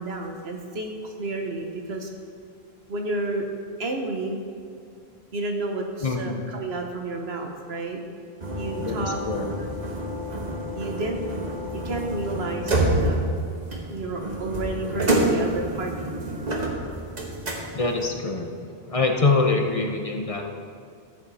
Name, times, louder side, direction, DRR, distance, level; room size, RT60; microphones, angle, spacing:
voice 1, 0.0-2.1 2.9-3.4 3.8-4.4 5.3-8.0 8.5-9.2 10.7-11.4 11.8-13.2 13.9-16.1, right 2 dB, 85° right, 2 dB, 1.4 m, -31 dB
voice 2, 6.0-6.4 8.8-9.5 17.7-18.5 18.9-20.5, left 3 dB, 35° left, 3 dB, 0.8 m, -24 dB
sound 1, 8.4-18.1, right 1 dB, 45° right, 1.3 m, -28 dB
13.5 x 7.1 x 4.2 m, 2.3 s
omnidirectional pair, 1.0 m